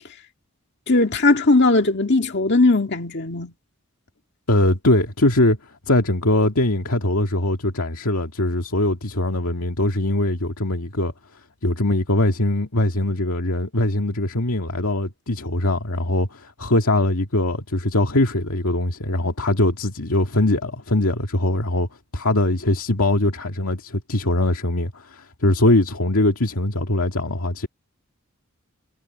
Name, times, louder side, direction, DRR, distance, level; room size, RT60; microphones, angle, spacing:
voice 1, 0.9-3.5, left 2 dB, 50° left, 2.1 m, -18 dB
voice 2, 4.5-5.6 5.9-11.1 11.6-21.9 22.1-27.7, left 1 dB, 85° left, 2.1 m, -21 dB
head